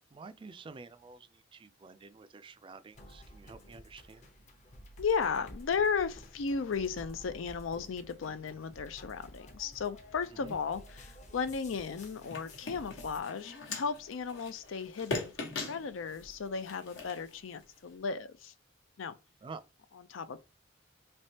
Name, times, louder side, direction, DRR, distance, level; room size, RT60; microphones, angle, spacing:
voice 1, 0.0-4.2 10.3-10.5 19.4-19.6, right 4 dB, 25° right, 0.3 m, -49 dB
sound 1, 2.9-13.2, equal, 40° left, 0.8 m, -52 dB
voice 2, 5.0-18.5 19.0-19.2 20.1-20.4, left 5 dB, 85° left, 0.5 m, -35 dB
sound 2, 11.9-18.0, left 3 dB, 70° left, 1.1 m, -42 dB
3.4 x 3.1 x 2.7 m
head